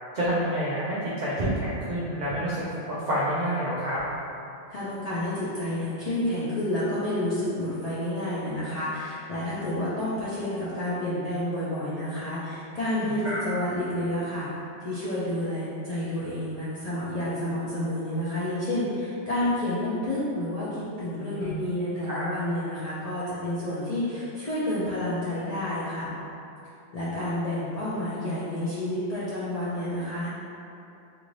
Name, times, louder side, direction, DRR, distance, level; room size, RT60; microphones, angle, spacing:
voice 1, 0.1-2.6 3.0-4.0 12.9-13.4 21.4-21.5 22.1-22.3, equal, 60° right, -8 dB, 0.4 m, -28 dB
voice 2, 4.7-14.5 14.8-26.1 26.9-30.3, left 1 dB, 60° left, -10 dB, 0.4 m, -29 dB
2.5 x 2.5 x 3.0 m, 2.7 s
omnidirectional pair, 1.2 m